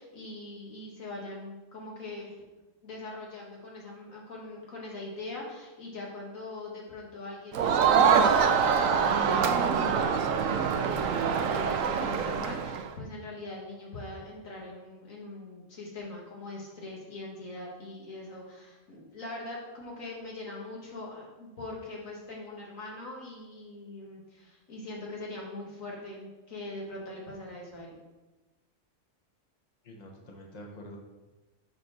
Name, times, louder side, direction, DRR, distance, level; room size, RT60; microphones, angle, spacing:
voice 1, 0.0-2.4 2.8-28.0, left 2 dB, 90° left, -3 dB, 2.2 m, -42 dB
Crowd, 7.5-12.9, right 6 dB, 85° right, 1.1 m, -24 dB
voice 2, 29.8-31.0, equal, 35° left, 0 dB, 1.2 m, -46 dB
7.2 x 4.2 x 6.5 m, 1.1 s
omnidirectional pair, 1.3 m